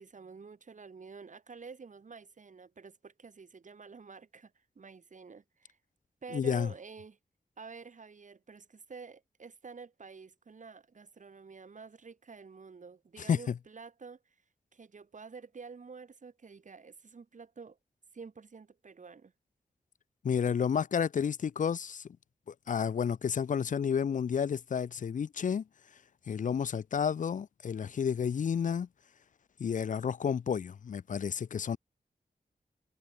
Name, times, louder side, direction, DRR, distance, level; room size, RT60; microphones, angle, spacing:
voice 1, 0.0-5.8 6.2-7.2 7.6-14.4 14.7-17.8 18.1-19.3, right 5 dB, 55° right, 1.9 m, -49 dB
voice 2, 6.3-6.7 13.3-13.5 20.2-22.0 22.7-25.6 26.3-28.9 29.6-31.8, left 7 dB, 60° left, 0.4 m, -31 dB
wide cardioid pair, 105°, 15 cm